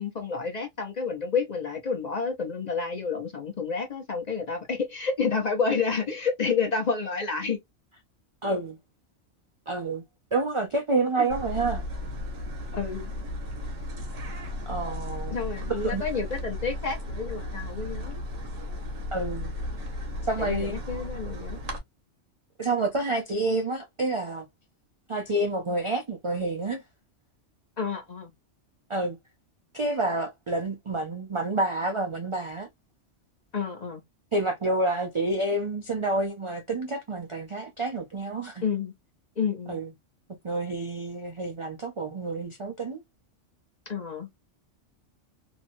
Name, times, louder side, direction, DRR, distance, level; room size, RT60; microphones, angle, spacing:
voice 1, 0.0-7.6 11.2-11.3 12.7-13.1 15.3-18.2 20.4-21.6 27.8-28.3 33.5-34.0 38.6-38.9 39.4-39.8 43.9-44.3, left 5 dB, 40° left, 0.7 m, -29 dB
voice 2, 8.4-8.8 9.7-10.0 10.3-11.8 14.7-15.4 15.7-16.0 19.1-19.5 20.2-20.7 22.6-24.5 25.1-26.8 28.9-29.2 29.7-32.7 34.3-38.6 39.7-39.9 40.4-43.0, right 2 dB, 50° right, 0.3 m, -28 dB
sound 1, 11.3-21.8, left 1 dB, 85° right, 1.3 m, -35 dB
2.9 x 2.6 x 2.5 m
omnidirectional pair, 1.3 m